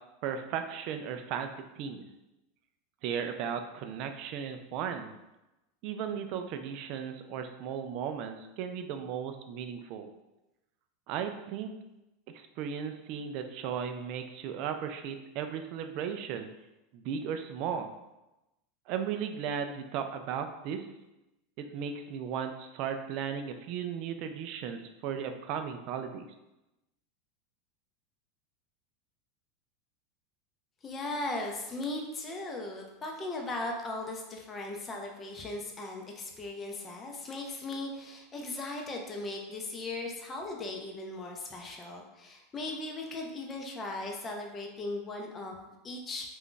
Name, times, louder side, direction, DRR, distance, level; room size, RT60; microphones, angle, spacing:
voice 1, 0.2-1.5 1.8-2.0 3.0-5.1 5.8-10.1 11.1-11.7 12.3-16.5 16.9-17.9 18.9-20.9 21.6-26.3, right 7 dB, 55° right, 7 dB, 0.3 m, -36 dB
voice 2, 30.8-46.3, left 2 dB, 20° left, 1 dB, 0.5 m, -38 dB
2.5 x 2.3 x 3.6 m, 0.98 s
supercardioid pair, 130°, 0 cm